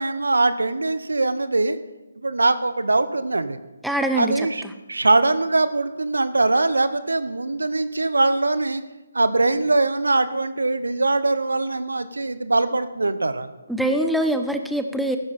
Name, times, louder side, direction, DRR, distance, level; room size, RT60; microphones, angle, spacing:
voice 1, 0.0-1.8 2.2-3.6 4.2-4.6 4.9-8.8 9.1-13.5, right 2 dB, 80° right, 13 dB, 1.1 m, -22 dB
voice 2, 3.8-4.5 13.7-15.2, right 1 dB, ahead, 6 dB, 0.8 m, -23 dB
15.0 x 13.0 x 4.3 m, 1.1 s
figure-of-eight pair, 150°, 0 cm